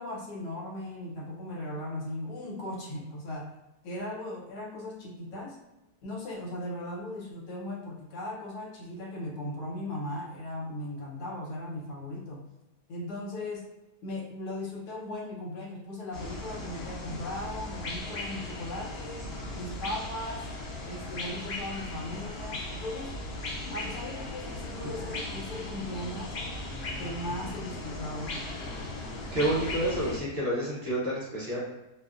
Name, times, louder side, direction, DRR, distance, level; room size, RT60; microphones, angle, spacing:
voice 1, 0.0-3.5 3.8-5.6 6.0-12.5 12.9-13.7 14.0-20.5 20.8-23.2 23.7-26.4 27.0-28.3, left 1 dB, 80° left, -3 dB, 1.2 m, -38 dB
sound 1, 16.1-30.2, left 2 dB, 65° left, 0.6 m, -37 dB
voice 2, 29.3-31.7, right 1 dB, 55° right, -7 dB, 0.9 m, -29 dB
2.7 x 2.1 x 2.3 m, 0.94 s
omnidirectional pair, 1.7 m